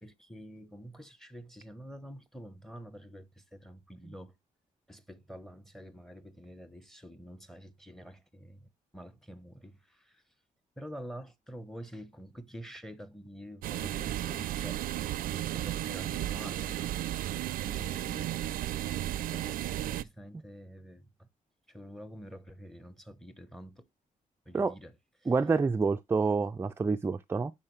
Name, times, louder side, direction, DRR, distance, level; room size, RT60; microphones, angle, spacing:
voice 1, 0.0-4.3 4.9-10.2 10.8-14.8 15.3-16.9 18.8-21.3 21.7-23.9 24.5-25.3, equal, ahead, 0.9 m, -48 dB
sound 1, 13.6-20.0, right 13 dB, 90° right, 0.4 m, -34 dB
voice 2, 25.3-27.5, right 4 dB, 15° right, 0.3 m, -28 dB
11.5 x 4.4 x 3.2 m
cardioid pair, 135°, 14 cm